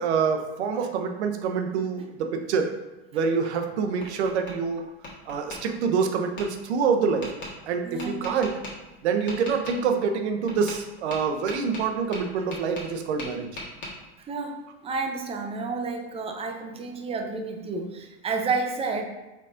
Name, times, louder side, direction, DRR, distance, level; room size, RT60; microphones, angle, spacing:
voice 1, 0.0-2.7 3.1-4.8 5.3-7.3 7.7-8.5 9.0-13.5, right 5 dB, 80° right, 6 dB, 0.6 m, -26 dB
Tap, 3.5-4.6 5.0-5.6 6.4-6.5 7.2-7.5 8.0-8.7 9.3-9.8 10.5-10.8 11.1-12.9 13.2-13.9, left 1 dB, 35° left, 1.4 m, -38 dB
voice 2, 7.8-8.3 14.2-19.0, right 4 dB, 20° right, 4 dB, 0.5 m, -30 dB
4.3 x 4.0 x 2.5 m, 1.1 s
hypercardioid pair, 105°, 33 cm